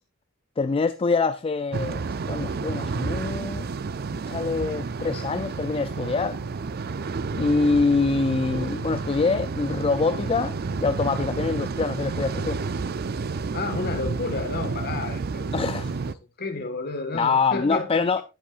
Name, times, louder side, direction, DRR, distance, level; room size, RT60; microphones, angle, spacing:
voice 1, 0.6-3.7 4.3-6.4 7.4-12.6 15.5-16.0 17.1-18.2, left 4 dB, 25° left, 0.4 m, -25 dB
sound 1, 1.7-16.1, right 4 dB, 45° right, 0.5 m, -30 dB
voice 2, 13.5-15.5 16.4-18.0, left 3 dB, 50° left, 1.6 m, -31 dB
10.0 x 9.9 x 2.5 m
head